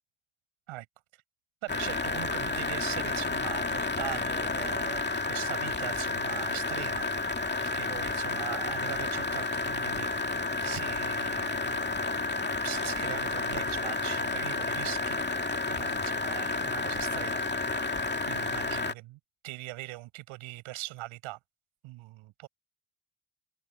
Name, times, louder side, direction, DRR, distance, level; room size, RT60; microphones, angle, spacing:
voice 1, 1.6-7.1 7.5-11.9 12.5-18.0 18.3-21.4 21.8-22.5, right 19 dB, 90° right, 6.8 m, -41 dB
sound 1, 1.7-18.9, left 3 dB, 20° left, 2.3 m, -31 dB
open air
supercardioid pair, 60°, 47 cm